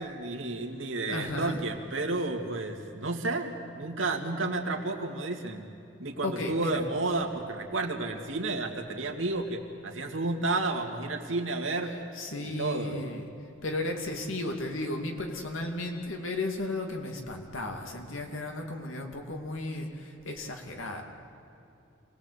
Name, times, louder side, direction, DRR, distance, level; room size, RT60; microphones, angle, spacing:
voice 1, 0.0-5.7 6.0-12.0 12.4-13.0, right 2 dB, 75° right, 3 dB, 2.3 m, -31 dB
voice 2, 1.1-1.6 6.2-6.8 11.8-13.3 13.6-21.0, left 2 dB, 80° left, 3 dB, 2.6 m, -34 dB
27.0 x 19.5 x 8.3 m, 2.7 s
head